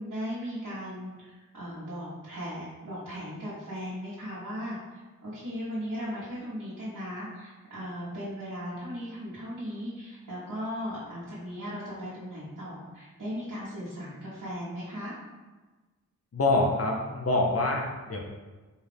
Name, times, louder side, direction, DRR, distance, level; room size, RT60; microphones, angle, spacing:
voice 1, 0.0-15.1, equal, 75° right, -10 dB, 1.2 m, -37 dB
voice 2, 16.3-18.2, left 2 dB, 50° left, -1 dB, 0.7 m, -25 dB
4.6 x 2.4 x 3.4 m, 1.3 s
wide cardioid pair, 95°, 32 cm